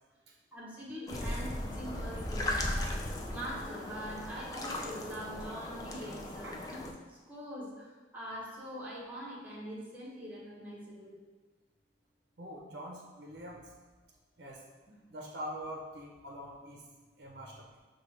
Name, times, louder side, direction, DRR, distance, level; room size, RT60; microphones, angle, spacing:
voice 1, 0.5-11.2, equal, 10° right, -7 dB, 0.9 m, -43 dB
sound 1, 1.1-6.9, left 1 dB, 20° left, 0.3 m, -37 dB
voice 2, 12.4-13.7 14.4-14.6 15.1-16.8 17.2-17.7, equal, 65° right, -2 dB, 0.6 m, -44 dB
6.0 x 2.3 x 3.2 m, 1.3 s
head